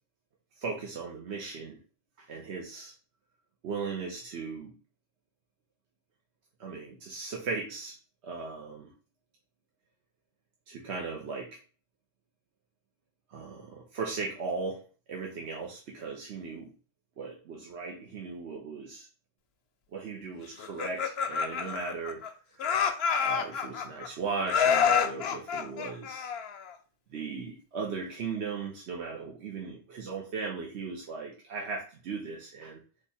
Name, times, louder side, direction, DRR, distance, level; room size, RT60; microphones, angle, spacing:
voice 1, 0.6-1.8 2.2-2.9 3.6-4.7 6.6-8.0 8.2-8.9 10.7-11.6 13.3-14.8 15.1-16.7 17.2-19.1 19.9-22.2 22.5-22.6 23.2-26.3 27.1-32.8, right 4 dB, 65° right, -1 dB, 1.1 m, -37 dB
Laughter, 20.6-22.3 22.6-24.1 24.5-26.7, left 7 dB, 65° left, 0.8 m, -28 dB
3.5 x 3.2 x 4.2 m, 0.37 s
omnidirectional pair, 1.2 m